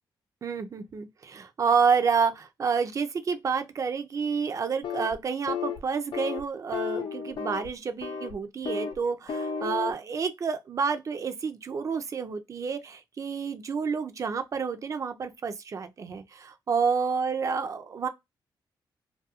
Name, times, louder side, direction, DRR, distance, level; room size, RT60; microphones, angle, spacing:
voice 1, 0.4-18.1, right 5 dB, 40° right, 0.4 m, -29 dB
sound 1, 4.8-5.1 5.5-5.8 6.1-6.4 6.7-7.7 8.0-8.3 8.6-9.0 9.3-9.9, left 6 dB, 65° left, 0.6 m, -33 dB
2.3 x 2.3 x 2.8 m
cardioid pair, 100°, 9 cm